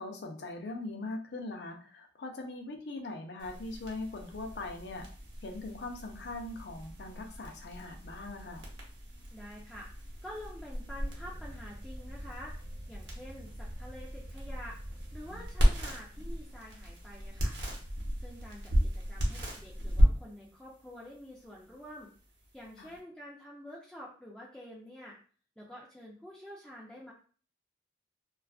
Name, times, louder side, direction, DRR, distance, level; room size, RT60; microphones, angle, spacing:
voice 1, 0.0-5.1 5.4-8.7 15.3-15.4 22.8-22.9, left 2 dB, 65° left, 3 dB, 0.5 m, -41 dB
sound 1, 3.4-23.0, equal, 70° right, 0.7 m, -34 dB
voice 2, 9.3-9.9 10.2-12.5 12.9-14.8 15.1-17.6 18.2-22.1 22.5-25.2 25.6-27.1, equal, 5° left, -5 dB, 0.3 m, -48 dB
2.4 x 2.3 x 2.3 m, 0.41 s
head